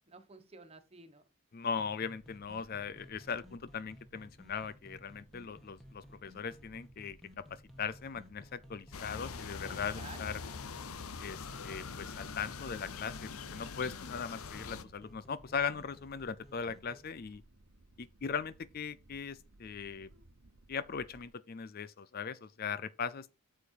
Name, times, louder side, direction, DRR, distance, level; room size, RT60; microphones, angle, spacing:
voice 1, 0.1-1.2 9.6-10.6, right 3 dB, 25° right, 1.3 m, -53 dB
voice 2, 1.5-10.4 11.2-17.4 18.0-20.1 20.7-23.3, left 6 dB, 40° left, 0.4 m, -39 dB
sound 1, 1.8-17.0, left 1 dB, ahead, 1.4 m, -58 dB
sound 2, 2.2-21.3, right 1 dB, 65° right, 1.1 m, -61 dB
sound 3, 8.9-14.8, left 5 dB, 75° left, 0.7 m, -43 dB
8.6 x 7.0 x 4.6 m
head